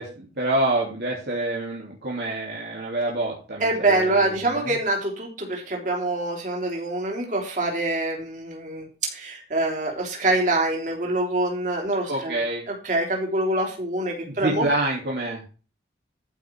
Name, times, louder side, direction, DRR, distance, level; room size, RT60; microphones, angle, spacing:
voice 1, 0.0-4.8 12.1-12.6 14.3-15.4, right 2 dB, 60° right, -3 dB, 3.0 m, -27 dB
voice 2, 3.6-8.9 9.1-12.4 12.7-14.7, right 2 dB, 45° right, 0 dB, 3.5 m, -25 dB
14.0 x 5.6 x 4.6 m, 0.34 s
head